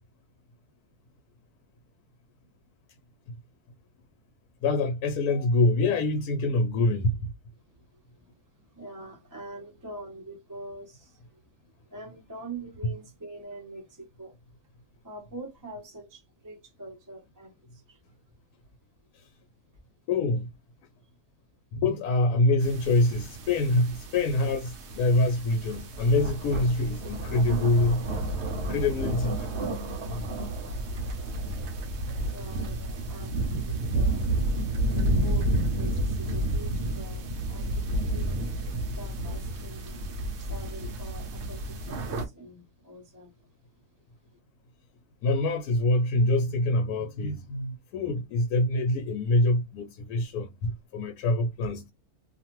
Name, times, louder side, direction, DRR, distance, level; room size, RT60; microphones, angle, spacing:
voice 1, 4.6-7.3 20.1-20.5 21.7-28.1 28.7-29.5 30.1-30.2 45.2-51.9, left 2 dB, 80° left, 1.1 m, -25 dB
voice 2, 7.9-11.4 11.9-14.4 15.0-18.0 32.2-34.2 34.9-35.5 35.7-38.4 38.9-43.3, right 2 dB, 20° right, 0.6 m, -44 dB
sound 1, 22.6-42.3, right 1 dB, 60° right, 0.8 m, -31 dB
2.5 x 2.4 x 2.9 m
omnidirectional pair, 1.6 m